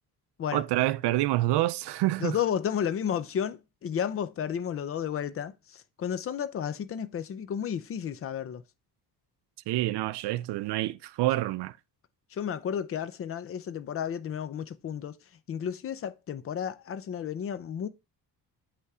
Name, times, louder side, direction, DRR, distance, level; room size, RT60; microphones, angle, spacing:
voice 1, 0.5-2.4 9.7-11.8, right 16 dB, 80° right, 0.5 m, -27 dB
voice 2, 2.2-8.6 12.3-15.2 15.5-17.9, left 8 dB, 35° left, 0.5 m, -32 dB
8.2 x 3.4 x 4.8 m
cardioid pair, 175°, 41 cm